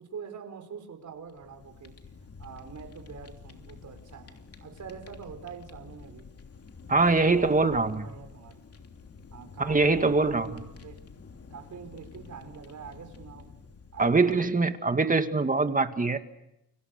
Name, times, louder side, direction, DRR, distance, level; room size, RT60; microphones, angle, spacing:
voice 1, 0.0-2.0 2.4-6.3 7.1-8.6 9.3-11.0 11.5-13.5 13.9-14.6, right 6 dB, 50° right, 6 dB, 5.0 m, -44 dB
Fire, 1.1-14.7, left 5 dB, 40° left, 3.1 m, -49 dB
voice 2, 6.9-8.1 9.6-10.6 14.0-16.2, right 3 dB, 20° right, 8 dB, 2.1 m, -23 dB
30.0 x 25.0 x 6.8 m, 0.85 s
cardioid pair, 95°, 37 cm